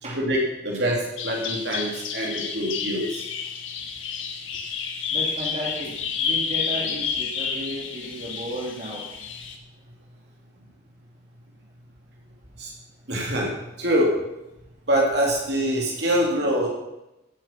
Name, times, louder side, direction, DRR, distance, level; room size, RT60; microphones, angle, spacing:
voice 1, 0.0-3.2 12.6-12.7 13.1-13.5 13.8-14.1 14.9-16.7, equal, 60° right, -2 dB, 3.0 m, -24 dB
Bird vocalization bird call bird song, 1.2-9.6, left 6 dB, 90° left, 1.6 m, -30 dB
voice 2, 5.1-9.0, equal, 35° right, -3 dB, 2.8 m, -34 dB
16.0 x 7.9 x 5.9 m, 0.94 s
head